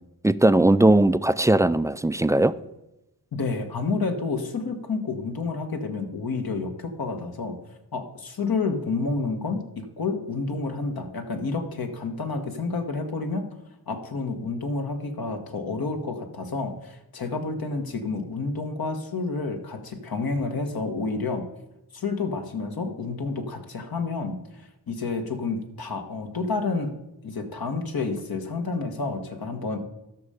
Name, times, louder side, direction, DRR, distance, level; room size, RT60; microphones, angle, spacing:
voice 1, 0.2-2.5, right 1 dB, 10° right, 14 dB, 0.3 m, -19 dB
voice 2, 3.3-7.6 7.9-13.5 13.9-21.5 21.9-26.9 27.2-29.8, left 3 dB, 70° left, 5 dB, 1.4 m, -29 dB
13.0 x 5.6 x 5.0 m, 0.92 s
cardioid pair, 55°, 38 cm